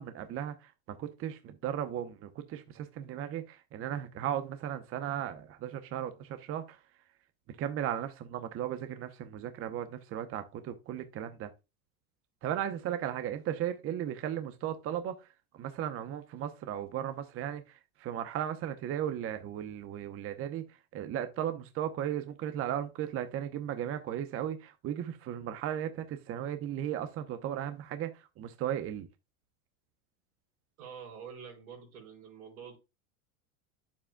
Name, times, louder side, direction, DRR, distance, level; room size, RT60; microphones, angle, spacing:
voice 1, 0.0-6.8 7.6-11.5 12.4-15.3 15.5-20.6 20.9-29.1, right 10 dB, 30° right, 0.8 m, -36 dB
voice 2, 30.8-32.8, right 7 dB, 90° right, 4.6 m, -47 dB
8.5 x 7.2 x 2.2 m
supercardioid pair, 120°, 42 cm